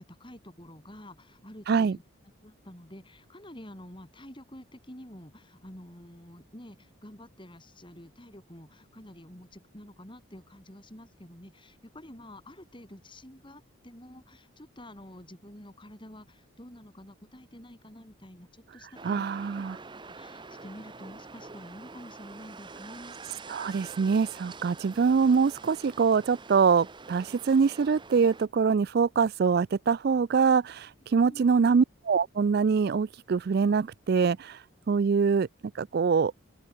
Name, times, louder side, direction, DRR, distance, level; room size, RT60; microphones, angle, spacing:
voice 1, 0.0-2.0 2.4-19.3 20.0-23.2 31.1-31.5, left 1 dB, 25° left, 4.2 m, -48 dB
sound 1, 18.9-28.5, right 4 dB, 20° right, 0.7 m, -46 dB
voice 2, 19.0-19.8 23.5-34.6 34.9-35.5 35.8-36.3, right 5 dB, 50° right, 0.3 m, -24 dB
open air
head